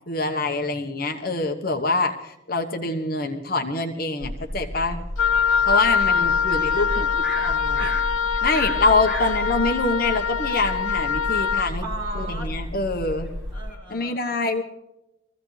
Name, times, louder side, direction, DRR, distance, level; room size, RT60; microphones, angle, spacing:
voice 1, 0.1-5.0 5.7-7.1 7.5-7.8 8.4-11.8 12.1-13.3 13.9-14.6, left 3 dB, 45° left, 5 dB, 1.1 m, -25 dB
sound 1, 4.2-13.7, left 1 dB, 65° right, 3.4 m, -33 dB
Wind instrument woodwind instrument, 5.2-11.7, left 6 dB, 90° left, 0.6 m, -23 dB
sound 2, 6.0-6.5 6.9-10.5 11.0-13.8, equal, ahead, 4.7 m, -36 dB
voice 2, 6.2-8.0 9.2-9.3 11.8-12.5 13.5-14.4, right 1 dB, 25° right, -4 dB, 7.4 m, -38 dB
22.5 x 15.5 x 3.3 m, 0.91 s
head